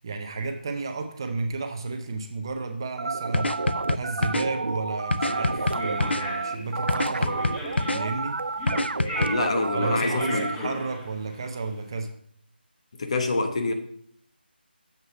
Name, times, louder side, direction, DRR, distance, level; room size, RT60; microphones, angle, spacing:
voice 1, 0.0-3.5 3.9-7.6 7.9-8.4 9.7-12.1, right 3 dB, 25° right, 6 dB, 0.6 m, -32 dB
sound 1, 3.0-10.6, right 3 dB, 85° right, 0.5 m, -30 dB
sound 2, 3.3-4.4 5.1-6.2 6.9-8.0 8.7-9.3, left 2 dB, 85° left, 0.6 m, -25 dB
sound 3, 5.2-11.9, left 1 dB, 10° left, 1.0 m, -37 dB
voice 2, 9.2-10.5 12.9-13.7, left 3 dB, 35° left, 6 dB, 0.9 m, -26 dB
7.3 x 6.3 x 5.5 m, 0.65 s
figure-of-eight pair, 170°, 6 cm